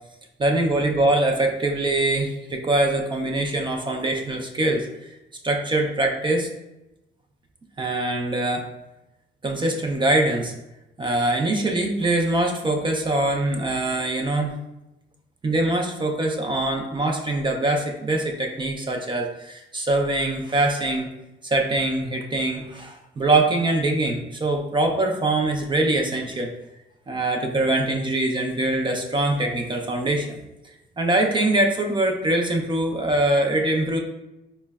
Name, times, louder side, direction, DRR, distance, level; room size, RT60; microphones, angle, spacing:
voice 1, 0.4-5.1 5.4-6.5 7.8-8.7 9.4-10.5 11.0-14.6 15.4-21.1 21.4-26.5 27.1-30.4 31.0-34.0, right 2 dB, 25° right, 2 dB, 0.4 m, -23 dB
4.3 x 2.0 x 2.2 m, 0.95 s
cardioid pair, 90°, 20 cm